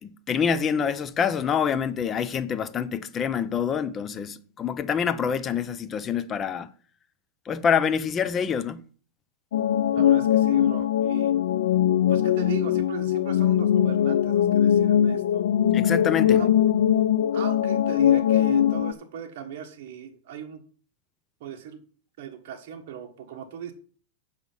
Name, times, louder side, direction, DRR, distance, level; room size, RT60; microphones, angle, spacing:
voice 1, 0.0-6.7 7.5-8.8 15.7-16.4, left 7 dB, 20° left, 0.5 m, -26 dB
sound 1, 9.5-18.9, left 10 dB, 80° left, 0.4 m, -21 dB
voice 2, 9.9-11.3 12.1-15.4 16.3-16.5 17.3-20.6 21.4-21.8 22.2-23.7, right 9 dB, 55° right, 1.4 m, -38 dB
8.1 x 5.7 x 5.5 m
supercardioid pair, 150°, 0 cm